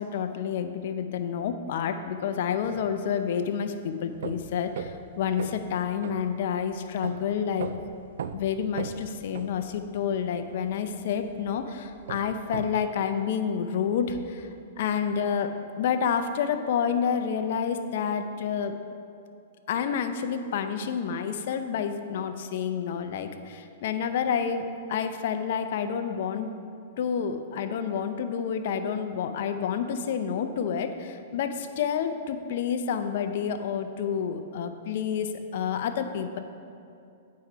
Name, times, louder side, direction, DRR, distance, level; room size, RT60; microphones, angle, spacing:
voice 1, 0.0-7.7 8.3-14.5 14.8-18.8 19.7-26.5 27.0-36.4, left 7 dB, 60° left, 8 dB, 0.5 m, -29 dB
sound 1, 4.1-12.8, right 7 dB, 70° right, 0.3 m, -39 dB
8.4 x 4.7 x 4.9 m, 2.6 s
hypercardioid pair, 135°, 0 cm